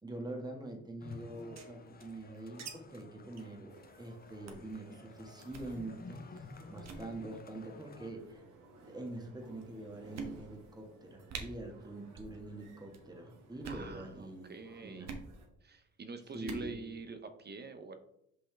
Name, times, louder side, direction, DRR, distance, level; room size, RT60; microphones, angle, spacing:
voice 1, 0.0-8.4 8.8-14.5 14.8-15.1 16.3-16.8, right 2 dB, 15° right, 2 dB, 1.5 m, -45 dB
sound 1, 1.0-8.1, left 4 dB, 30° left, 0.7 m, -53 dB
sound 2, 1.3-2.7 3.0-3.1 3.3-3.5 3.9-4.1 4.5-4.7 5.4-5.7 6.3-6.5 6.8-7.0 7.9-8.4 9.1-9.2 9.6-9.7 10.1-10.7 11.0-11.1 11.3-11.4 12.1-12.4 12.6-13.0 13.5-13.9 15.0-15.3 16.3-16.7, right 5 dB, 60° right, 1.2 m, -45 dB
sound 3, 3.7-15.5, right 2 dB, 85° right, 1.5 m, -59 dB
voice 2, 13.6-15.1 15.6-18.0, right 4 dB, 35° right, 8 dB, 0.7 m, -46 dB
5.5 x 5.4 x 3.3 m, 0.76 s
cardioid pair, 90°, 30 cm